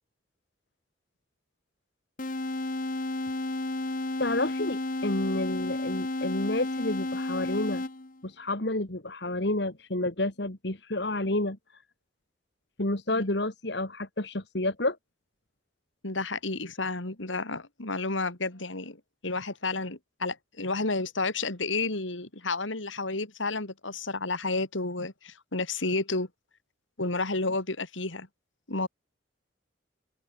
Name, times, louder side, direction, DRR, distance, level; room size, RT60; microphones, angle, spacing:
sound 1, 2.2-8.2, left 2 dB, 45° left, 1.2 m, -32 dB
voice 1, 4.2-7.8 8.2-11.6 12.8-15.0, left 2 dB, 60° left, 2.4 m, -30 dB
voice 2, 16.0-26.3 27.0-28.3 28.7-28.9, left 3 dB, 80° left, 3.2 m, -31 dB
open air
head